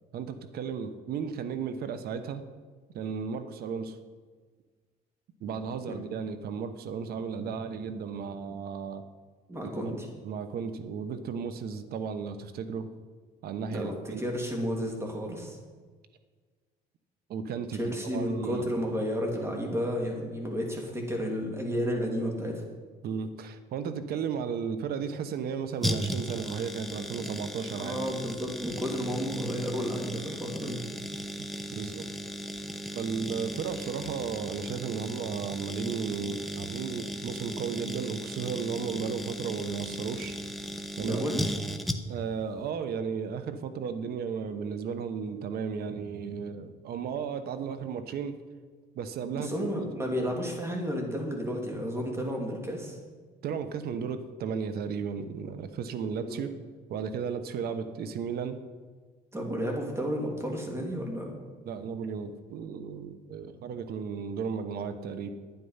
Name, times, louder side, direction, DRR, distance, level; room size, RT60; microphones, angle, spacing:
voice 1, 0.1-2.4 2.9-4.0 5.4-9.0 9.6-9.7 10.2-12.9 13.4-14.2 17.3-18.7 23.0-28.0 31.4-32.1 32.9-40.4 41.0-41.2 42.1-48.4 48.9-49.7 53.4-56.5 56.9-58.6 61.6-65.3, right 6 dB, 65° right, 10 dB, 1.1 m, -34 dB
voice 2, 9.5-10.1 13.7-15.6 17.8-22.6 27.7-30.9 41.0-41.4 49.3-53.0 56.2-56.4 59.3-61.3, equal, 15° right, 1 dB, 2.8 m, -32 dB
sound 1, 25.8-42.3 42.6-42.7, equal, ahead, 0.8 m, -36 dB
11.5 x 9.2 x 5.7 m, 1.5 s
cardioid pair, 110°, 17 cm